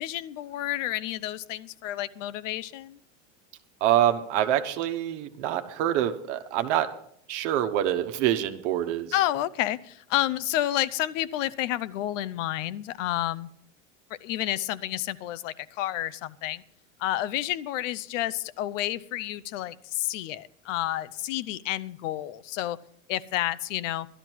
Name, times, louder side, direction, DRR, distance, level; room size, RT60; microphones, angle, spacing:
voice 1, 0.0-3.0 9.1-13.5 14.2-16.6 17.0-22.8 23.1-24.1, left 14 dB, 70° left, 18 dB, 0.7 m, -30 dB
voice 2, 3.8-6.9 7.3-9.1, right 11 dB, 60° right, 7 dB, 1.2 m, -25 dB
12.5 x 12.0 x 4.6 m, 0.67 s
supercardioid pair, 135°, 39 cm